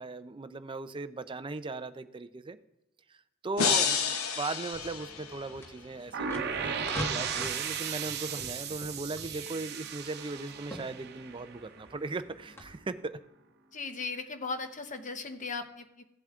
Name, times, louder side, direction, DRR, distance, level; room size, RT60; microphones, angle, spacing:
voice 1, 0.0-2.6 3.1-6.8 7.1-13.2, right 3 dB, 25° right, 11 dB, 0.5 m, -38 dB
sound 1, 3.6-5.7, left 6 dB, 80° left, 0.9 m, -30 dB
sound 2, 4.7-12.6, equal, 10° left, 1.4 m, -44 dB
sound 3, 6.1-12.0, right 7 dB, 50° right, 0.8 m, -36 dB
voice 2, 13.7-16.0, left 4 dB, 35° left, 7 dB, 0.9 m, -37 dB
15.5 x 7.8 x 2.4 m, 0.92 s
head